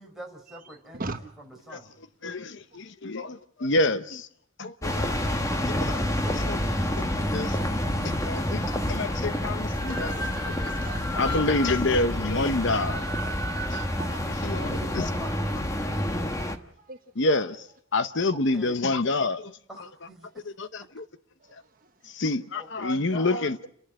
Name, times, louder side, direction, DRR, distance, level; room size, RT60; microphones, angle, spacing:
voice 1, 0.0-1.0 1.4-1.9 5.4-7.5 7.8-9.1 14.3-15.6 18.3-18.9 19.7-20.5 22.6-23.4, right 1 dB, ahead, 4.5 m, -44 dB
voice 2, 2.2-4.3 4.6-5.2 5.9-6.0 6.5-6.6 7.3-7.5 8.3-8.6 8.9-10.1 10.5-10.6 11.1-13.0 13.7-13.9 14.4-15.1 17.2-17.7 17.9-19.9 20.6-21.0 22.0-23.7, left 2 dB, 60° left, 0.8 m, -27 dB
sound 1, 4.8-16.6, left 1 dB, 15° left, 1.3 m, -28 dB
voice 3, 9.7-11.8 14.0-14.3 16.8-17.0 17.5-17.6 21.4-22.1, right 3 dB, 40° right, 1.1 m, -40 dB
30.0 x 11.5 x 8.8 m
head